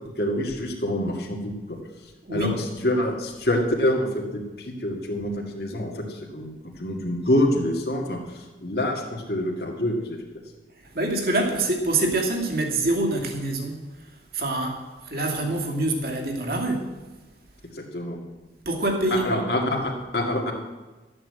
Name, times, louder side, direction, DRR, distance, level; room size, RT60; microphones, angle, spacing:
voice 1, 0.2-1.8 2.3-2.5 2.8-10.2 17.7-18.2 19.1-20.5, left 1 dB, 65° left, 0 dB, 2.1 m, -26 dB
voice 2, 10.9-13.9 14.3-16.9 18.7-19.4, right 2 dB, 60° right, 1 dB, 2.5 m, -25 dB
13.5 x 8.7 x 7.9 m, 1.2 s
head